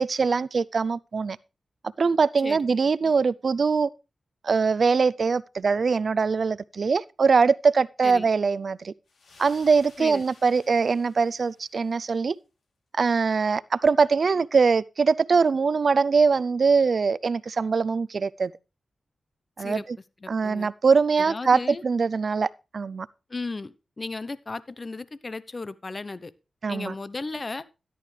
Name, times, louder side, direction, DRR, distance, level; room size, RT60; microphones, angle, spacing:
voice 1, 0.0-1.4 2.0-3.9 4.4-8.9 9.4-12.3 13.0-18.5 19.6-20.0 20.3-23.1 26.6-26.9, right 5 dB, 65° right, 0.5 m, -22 dB
sound 1, 9.1-12.1, left 3 dB, 80° left, 3.0 m, -55 dB
voice 2, 20.2-20.7 21.3-21.8 23.3-26.3 26.7-27.6, left 3 dB, 45° left, 0.7 m, -35 dB
13.5 x 11.0 x 3.3 m
cardioid pair, 55°, 0 cm